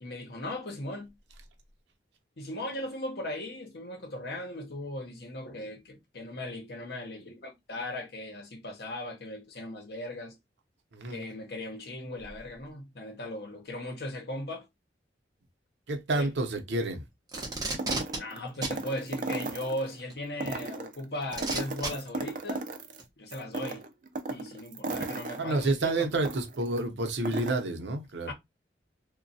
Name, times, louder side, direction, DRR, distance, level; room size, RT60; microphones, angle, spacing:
voice 1, 0.0-1.1 2.4-10.3 11.1-14.6 16.1-16.3 18.2-22.6 23.2-23.9 24.3-26.1 28.2-28.3, left 1 dB, 60° left, 0.8 m, -38 dB
voice 2, 15.9-17.0 25.4-28.3, right 2 dB, 80° right, 0.7 m, -29 dB
Packing tape duct tape, 17.3-18.2 18.6-18.8 20.1-20.2 21.3-21.9 23.0-23.1, right 3 dB, 20° right, 0.8 m, -32 dB
sound 1, 17.3-19.9 20.3-23.0 23.3-26.8 27.1-27.5, right 3 dB, 45° right, 0.4 m, -36 dB
3.0 x 2.2 x 2.6 m
head